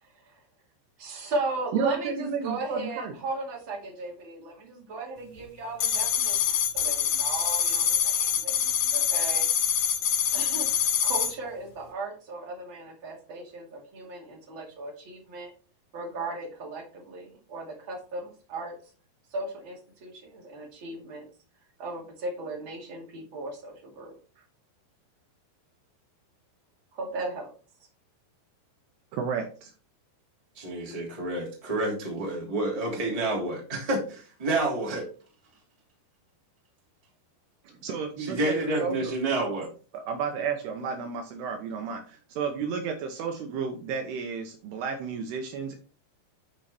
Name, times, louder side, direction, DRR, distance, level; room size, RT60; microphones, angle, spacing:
voice 1, 1.0-9.5 10.3-15.5 15.9-18.7 19.3-21.3 21.8-24.4 26.9-27.5, right 2 dB, 35° right, -1 dB, 2.3 m, -37 dB
voice 2, 1.7-3.1 29.1-29.7 37.6-39.1 39.9-45.8, right 6 dB, 75° right, 4 dB, 2.7 m, -32 dB
sound 1, 5.8-11.3, left 8 dB, 85° left, 3.5 m, -25 dB
voice 3, 30.6-35.1 38.2-39.7, right 2 dB, 10° right, -3 dB, 2.0 m, -29 dB
9.9 x 4.6 x 4.2 m, 0.38 s
omnidirectional pair, 5.1 m